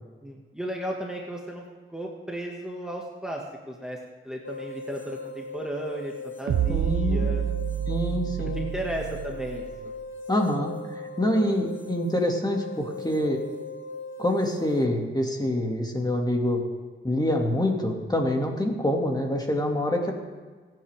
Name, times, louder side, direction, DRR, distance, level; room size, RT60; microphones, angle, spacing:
voice 1, 0.2-1.6 1.9-4.0 4.2-7.4 8.6-9.9, equal, 5° right, -1 dB, 2.1 m, -35 dB
sound 1, 4.4-14.9, left 3 dB, 65° left, 1.4 m, -39 dB
sound 2, 6.5-9.9, right 9 dB, 70° right, 0.6 m, -28 dB
voice 2, 6.7-7.3 7.9-8.6 10.3-10.7 11.2-13.4 14.2-16.6 17.0-20.1, left 1 dB, 20° left, 1 dB, 2.6 m, -26 dB
25.5 x 9.0 x 3.8 m, 1.4 s
cardioid pair, 65°, 21 cm